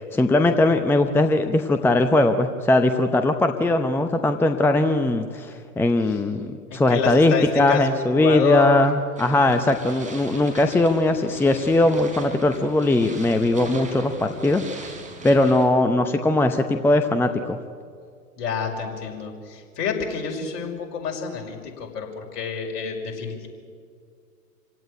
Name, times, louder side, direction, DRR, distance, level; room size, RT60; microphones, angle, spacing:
voice 1, 0.1-14.9 15.2-17.6, left 2 dB, 5° left, 7 dB, 0.8 m, -20 dB
voice 2, 6.7-8.9 18.4-23.5, left 6 dB, 50° left, 1 dB, 5.8 m, -28 dB
sound 1, 9.2-15.6, right 3 dB, 15° right, 4.9 m, -40 dB
27.0 x 17.0 x 9.9 m, 2.2 s
figure-of-eight pair, 110°, 47 cm